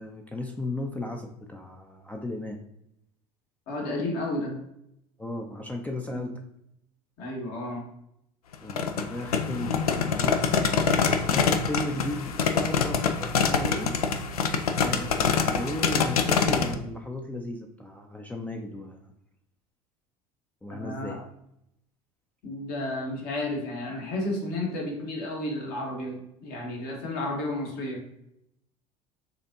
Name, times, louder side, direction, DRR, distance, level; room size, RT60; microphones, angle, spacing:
voice 1, 0.0-2.6 5.2-6.3 8.6-10.4 11.3-14.0 14.7-19.1 20.6-21.2, left 1 dB, 10° left, 3 dB, 0.4 m, -35 dB
voice 2, 3.7-4.6 6.1-6.3 7.2-7.9 20.7-21.2 22.4-28.0, left 1 dB, 55° left, -1 dB, 1.4 m, -32 dB
sound 1, 8.5-16.7, left 6 dB, 80° left, 0.4 m, -25 dB
6.5 x 2.6 x 2.6 m, 0.78 s
figure-of-eight pair, 70°, 19 cm